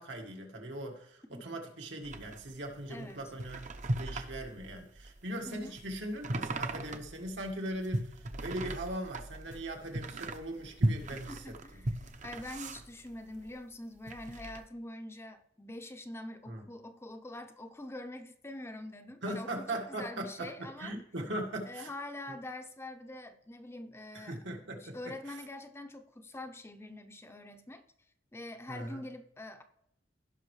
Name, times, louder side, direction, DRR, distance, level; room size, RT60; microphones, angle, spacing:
voice 1, 0.0-3.7 3.9-11.4 16.5-16.6 19.2-21.9 24.1-25.0 28.7-29.0, right 1 dB, 80° right, 2 dB, 1.9 m, -40 dB
sound 1, 2.0-13.6 14.0-14.7, right 1 dB, 45° right, 0.7 m, -38 dB
voice 2, 2.9-3.3 5.5-5.7 11.1-20.9 21.7-24.4 24.8-27.8 28.3-29.6, left 1 dB, 15° left, 7 dB, 0.6 m, -45 dB
16.5 x 5.6 x 3.2 m, 0.73 s
head